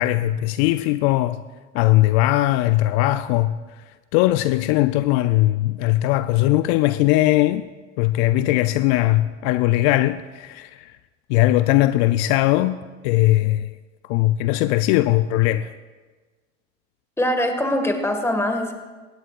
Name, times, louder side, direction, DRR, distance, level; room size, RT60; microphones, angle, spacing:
voice 1, 0.0-1.4 1.7-3.6 4.1-7.7 8.0-10.9 11.3-13.7 14.0-15.7, left 16 dB, 60° left, 0.5 m, -19 dB
voice 2, 17.2-18.7, left 1 dB, 5° left, 1.8 m, -22 dB
17.5 x 17.0 x 2.5 m
supercardioid pair, 105°, 36 cm